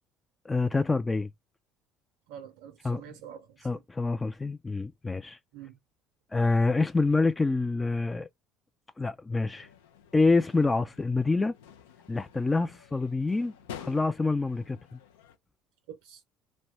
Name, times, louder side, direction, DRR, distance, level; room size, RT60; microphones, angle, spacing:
voice 1, 0.5-1.3 2.8-3.0 3.6-5.4 6.3-8.3 9.0-9.7 10.1-11.5 12.1-15.0, left 3 dB, 20° left, 0.3 m, -27 dB
voice 2, 2.3-3.8 5.5-5.8 15.9-16.2, right 9 dB, 80° right, 0.5 m, -46 dB
sound 1, 9.4-15.4, left 8 dB, 90° left, 0.5 m, -50 dB
2.6 x 2.1 x 2.9 m
hypercardioid pair, 75°, 0 cm